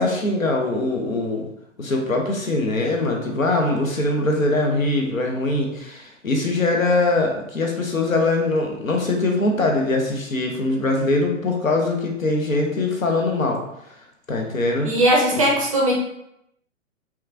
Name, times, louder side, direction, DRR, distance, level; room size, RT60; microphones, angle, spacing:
voice 1, 0.0-1.5 1.8-13.6 14.3-14.9 15.4-15.5, left 2 dB, 80° left, 2 dB, 0.7 m, -22 dB
voice 2, 14.8-15.9, right 1 dB, 25° right, -3 dB, 0.4 m, -18 dB
2.9 x 2.2 x 2.4 m, 0.79 s
figure-of-eight pair, 120°, 40 cm